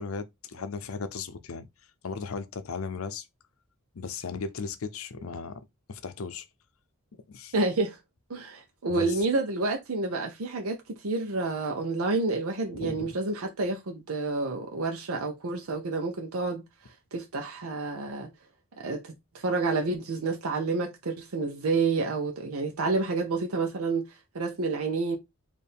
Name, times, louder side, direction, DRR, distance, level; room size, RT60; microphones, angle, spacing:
voice 1, 0.0-1.7 2.0-3.3 3.9-6.5 7.3-7.5 8.9-9.2 12.7-13.1, left 5 dB, 75° left, 0.6 m, -36 dB
voice 2, 7.5-8.0 8.3-16.6 17.1-18.3 18.8-25.2, right 3 dB, 90° right, 0.7 m, -29 dB
4.4 x 2.6 x 3.4 m
head